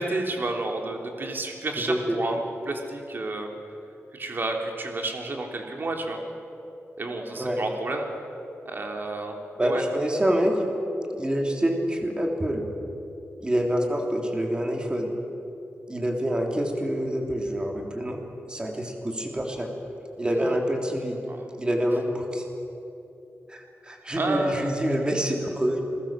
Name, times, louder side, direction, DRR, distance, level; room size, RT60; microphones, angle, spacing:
voice 1, 0.0-3.5 4.1-6.2 7.0-8.1 8.6-9.8 20.4-20.6 21.3-21.5 24.2-24.7, right 2 dB, 45° right, 2 dB, 3.3 m, -30 dB
voice 2, 1.9-2.2 7.4-7.6 9.6-10.6 11.2-12.7 13.4-15.1 15.9-18.2 18.5-19.7 20.2-21.2 21.6-22.4 23.5-25.8, equal, 20° right, 1 dB, 3.5 m, -26 dB
28.5 x 22.0 x 7.5 m, 2.8 s
wide cardioid pair, 115°, 5 cm